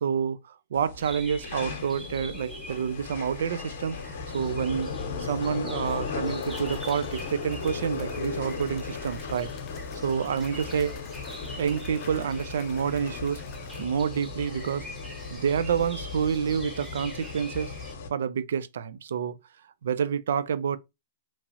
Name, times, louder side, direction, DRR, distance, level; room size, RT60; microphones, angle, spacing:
voice 1, 0.0-4.9 5.2-9.5 10.0-11.0 11.6-13.4 13.8-14.9 15.3-17.7 18.1-19.4 19.8-20.8, right 7 dB, 75° right, 0.3 m, -28 dB
sound 1, 0.7-18.1, left 5 dB, 70° left, 0.8 m, -37 dB
sound 2, 1.0-17.9, equal, 10° right, 0.8 m, -45 dB
sound 3, 6.4-13.8, left 7 dB, 30° left, 0.5 m, -51 dB
2.9 x 2.5 x 2.8 m
hypercardioid pair, 125°, 0 cm